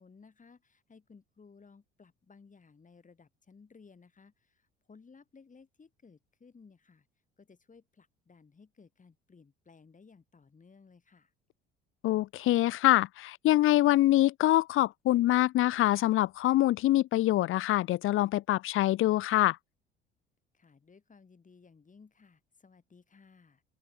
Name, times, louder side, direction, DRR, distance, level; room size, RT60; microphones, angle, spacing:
voice 1, 0.0-7.1 7.4-11.3 20.5-23.6, left 5 dB, 25° left, 7.1 m, -58 dB
voice 2, 12.0-19.6, left 15 dB, 45° left, 0.7 m, -25 dB
open air
hypercardioid pair, 60°, 29 cm